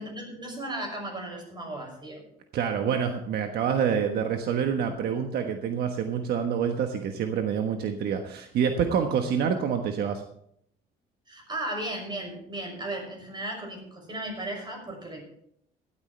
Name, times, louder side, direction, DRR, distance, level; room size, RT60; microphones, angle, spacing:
voice 1, 0.0-2.3 11.3-15.2, right 1 dB, 25° right, 2 dB, 6.6 m, -35 dB
voice 2, 2.5-10.2, right 7 dB, 70° right, 5 dB, 1.3 m, -27 dB
17.0 x 13.0 x 3.3 m, 0.70 s
cardioid pair, 110°, 17 cm